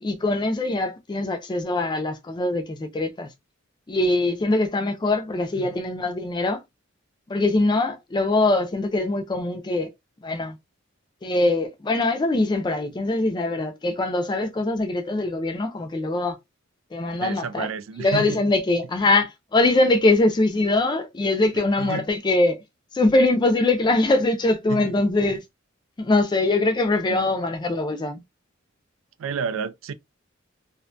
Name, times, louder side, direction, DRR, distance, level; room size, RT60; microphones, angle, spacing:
voice 1, 0.0-3.3 3.9-6.6 7.3-9.9 10.2-10.6 11.2-16.4 16.9-17.7 18.0-22.6 22.9-25.4 26.0-28.2, left 2 dB, 20° left, 0.3 m, -22 dB
voice 2, 17.2-18.4 21.8-22.1 24.7-25.0 27.1-27.3 29.2-29.9, right 5 dB, 80° right, 0.3 m, -31 dB
2.5 x 2.1 x 2.5 m
head